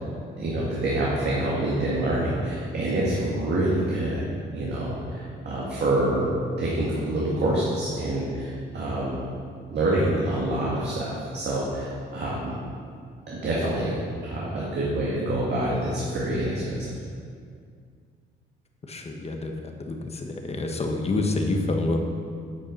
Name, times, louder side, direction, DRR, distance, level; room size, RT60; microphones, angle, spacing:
voice 1, 0.4-4.2 4.5-6.3 6.6-9.2 9.7-11.0 11.3-12.6 13.3-16.9, right 1 dB, 60° right, -6 dB, 1.9 m, -26 dB
voice 2, 18.9-22.0, left 2 dB, 30° left, 3 dB, 1.3 m, -28 dB
9.3 x 6.7 x 5.4 m, 2.2 s
cardioid pair, 90°, 20 cm